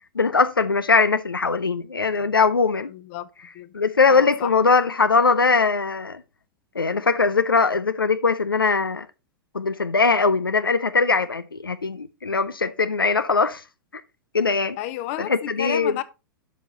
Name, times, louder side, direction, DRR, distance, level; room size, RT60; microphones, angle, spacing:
voice 1, 0.2-2.9 3.7-6.2 6.8-9.1 9.5-13.6 14.3-14.8 15.2-15.9, left 4 dB, 80° left, 0.6 m, -21 dB
voice 2, 2.9-3.3 3.5-3.7 4.1-4.5 14.8-16.0, left 15 dB, 45° left, 1.0 m, -32 dB
12.0 x 6.2 x 3.9 m
figure-of-eight pair, 95°, 12 cm